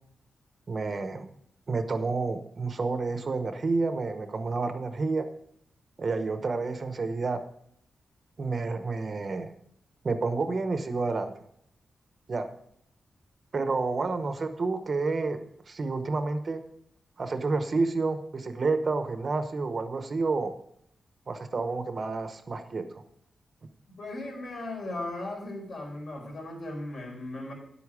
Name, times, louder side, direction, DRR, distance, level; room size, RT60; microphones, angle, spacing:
voice 1, 0.7-1.3 1.7-5.3 6.0-7.4 8.4-9.5 10.0-11.3 12.3-12.5 13.5-15.4 15.7-16.6 17.2-20.5 21.3-23.0, right 3 dB, 40° right, 8 dB, 0.9 m, -29 dB
voice 2, 24.0-27.5, left 2 dB, 65° left, 0 dB, 4.3 m, -37 dB
10.5 x 8.4 x 4.9 m, 0.71 s
wide cardioid pair, 130°, 0 cm